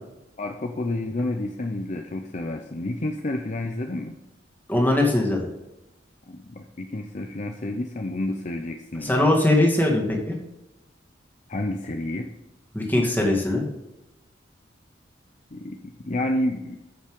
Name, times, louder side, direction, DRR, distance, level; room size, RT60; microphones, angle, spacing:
voice 1, 0.4-4.1 6.3-9.3 11.5-12.3 15.5-16.8, left 1 dB, 40° left, 4 dB, 0.7 m, -30 dB
voice 2, 4.7-5.5 9.0-10.4 12.7-13.6, left 1 dB, 10° left, -1 dB, 2.0 m, -21 dB
9.5 x 7.1 x 3.7 m, 0.96 s
head